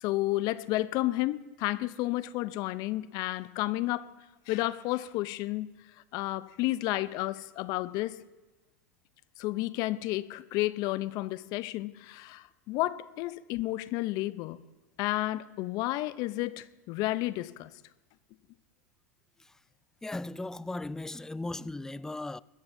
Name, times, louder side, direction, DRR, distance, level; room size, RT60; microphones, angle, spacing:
voice 1, 0.0-4.1 4.5-5.7 6.1-8.2 9.4-14.6 15.0-17.7, left 17 dB, 50° left, 0.7 m, -31 dB
voice 2, 20.0-22.4, left 2 dB, 5° left, 0.3 m, -37 dB
21.0 x 14.5 x 2.7 m
hypercardioid pair, 95°, 9 cm